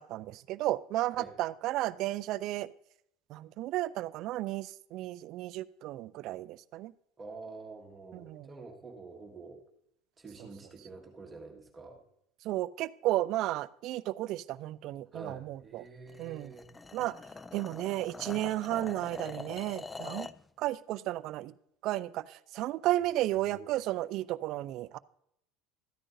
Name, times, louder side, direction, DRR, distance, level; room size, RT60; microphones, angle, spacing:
voice 1, 0.0-2.7 3.3-6.9 8.1-8.5 12.4-15.8 16.2-16.5 16.9-17.1 17.5-20.3 20.6-21.5 21.8-25.0, right 15 dB, 55° right, 15 dB, 0.4 m, -33 dB
voice 2, 7.2-9.6 10.2-12.0 15.1-16.7 23.4-23.7, right 3 dB, 20° right, 1 dB, 1.6 m, -47 dB
sound 1, 16.1-20.4, left 3 dB, 15° left, 0.3 m, -44 dB
13.5 x 9.9 x 2.7 m, 0.74 s
supercardioid pair, 105°, 0 cm